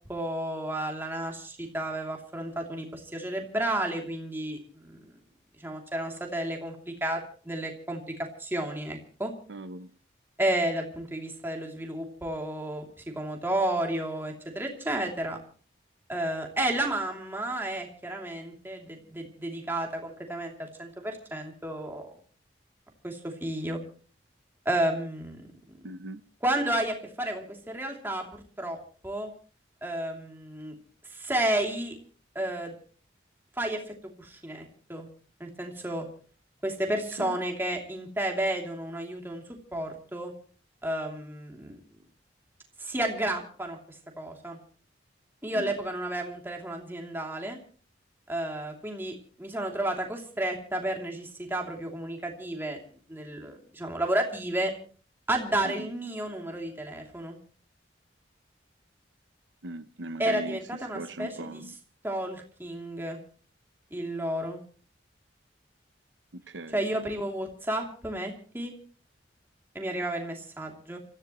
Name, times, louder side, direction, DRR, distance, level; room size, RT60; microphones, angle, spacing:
voice 1, 0.1-5.1 5.6-9.3 10.4-12.9 13.1-15.4 16.1-22.0 23.0-23.8 24.6-25.5 26.4-28.8 29.0-29.3 29.8-30.7 31.1-32.0 32.3-32.8 33.6-35.1 35.4-36.1 36.6-39.4 39.7-40.3 40.8-41.8 42.8-44.6 45.4-47.6 48.3-52.8 53.1-54.7 55.3-57.4 60.2-61.6 62.0-63.2 63.9-64.6 66.7-68.7 69.7-71.0, right 1 dB, 10° right, 2.9 m, -32 dB
voice 2, 9.5-9.9 25.8-26.2 37.2-37.4 45.5-45.8 55.6-55.9 59.6-61.7 66.3-66.8, right 2 dB, 75° right, 0.8 m, -39 dB
29.5 x 15.0 x 3.1 m
head